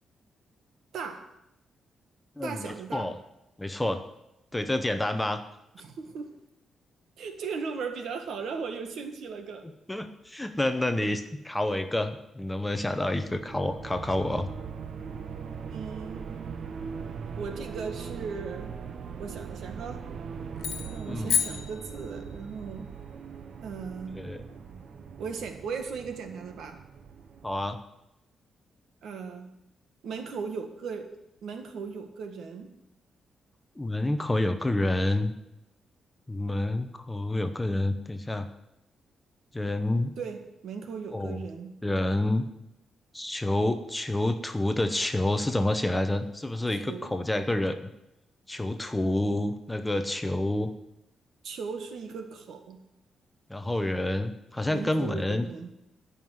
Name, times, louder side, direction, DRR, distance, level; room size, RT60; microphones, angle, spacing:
voice 1, 0.9-1.3 2.4-3.1 5.7-6.4 7.2-9.7 15.7-16.3 17.4-18.8 19.2-20.1 20.9-22.9 23.6-24.2 25.2-26.8 29.0-29.5 30.0-31.1 31.4-32.7 40.2-41.8 46.7-47.2 51.4-52.8 54.7-55.7, right 5 dB, 70° right, 6 dB, 1.6 m, -37 dB
voice 2, 2.4-3.1 3.6-4.0 4.5-5.4 9.9-14.5 21.1-21.4 24.2-24.4 27.4-27.8 33.8-35.3 36.3-38.5 39.5-40.1 41.1-41.5 41.8-42.4 43.1-47.9 48.5-50.7 53.5-55.5, left 1 dB, 10° left, 8 dB, 0.8 m, -28 dB
sound 1, 12.9-27.8, right 6 dB, 50° right, 0.8 m, -40 dB
sound 2, 20.6-22.5, left 8 dB, 70° left, 1.5 m, -31 dB
14.5 x 5.6 x 9.3 m, 0.87 s
wide cardioid pair, 160°, 0 cm